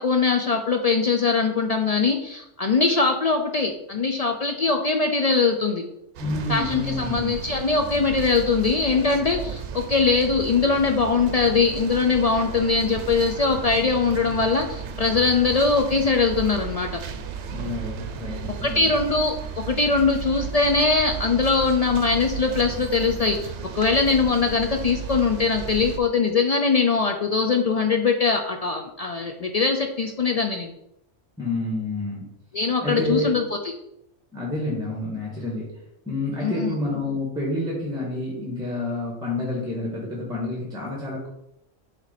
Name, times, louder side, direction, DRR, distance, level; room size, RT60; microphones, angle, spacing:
voice 1, 0.0-5.8 6.5-17.0 18.6-30.7 32.5-33.7 36.4-36.8, left 4 dB, 70° left, 4 dB, 0.3 m, -22 dB
sound 1, 6.1-26.0, right 7 dB, 70° right, 0.9 m, -34 dB
voice 2, 6.2-7.3 17.5-18.9 31.4-32.3 32.8-33.4 34.3-35.7 36.0-41.3, left 2 dB, 5° right, -4 dB, 1.5 m, -28 dB
7.2 x 3.3 x 4.0 m, 0.79 s
omnidirectional pair, 1.3 m